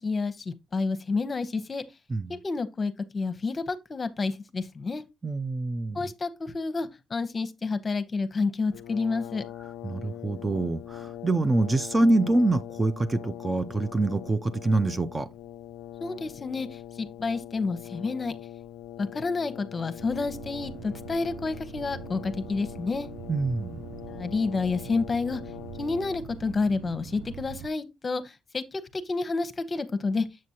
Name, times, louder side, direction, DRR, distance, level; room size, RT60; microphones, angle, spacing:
voice 1, 0.0-1.8 2.3-5.0 5.9-9.4 16.0-16.7 17.0-18.3 19.0-23.1 24.1-25.4 25.8-30.3, left 4 dB, 35° left, 0.8 m, -29 dB
voice 2, 5.2-6.0 9.8-15.3 23.3-23.8, right 2 dB, 20° right, 0.5 m, -25 dB
Brass instrument, 8.7-26.5, left 12 dB, 90° left, 0.3 m, -42 dB
sound 1, 20.0-27.7, right 10 dB, 85° right, 0.4 m, -43 dB
7.5 x 6.1 x 2.8 m
cardioid pair, 90°, 0 cm